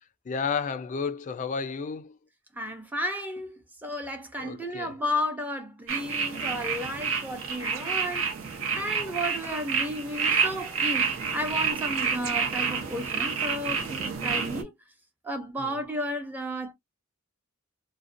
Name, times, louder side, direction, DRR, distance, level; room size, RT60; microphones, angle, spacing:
voice 1, 0.3-2.1 4.4-4.9 14.3-14.4 15.6-15.8, left 5 dB, 35° left, 0.3 m, -32 dB
voice 2, 2.6-14.7 15.2-16.7, equal, 10° right, 0.6 m, -33 dB
sound 1, 5.9-14.6, right 6 dB, 65° right, 0.7 m, -29 dB
2.4 x 2.1 x 2.5 m
head